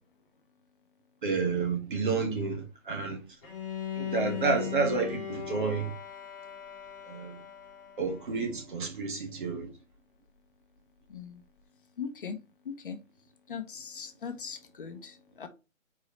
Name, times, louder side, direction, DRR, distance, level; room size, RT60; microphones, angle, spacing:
voice 1, 1.2-3.2 3.9-5.9 7.1-7.4 8.0-9.7, right 4 dB, 40° right, 1.7 m, -30 dB
Bowed string instrument, 3.4-8.4, left 9 dB, 15° left, 1.8 m, -38 dB
voice 2, 11.1-11.4 12.0-12.4 12.6-13.0 13.5-15.5, left 6 dB, 40° left, 1.0 m, -40 dB
4.8 x 4.6 x 4.3 m
figure-of-eight pair, 155°, 39 cm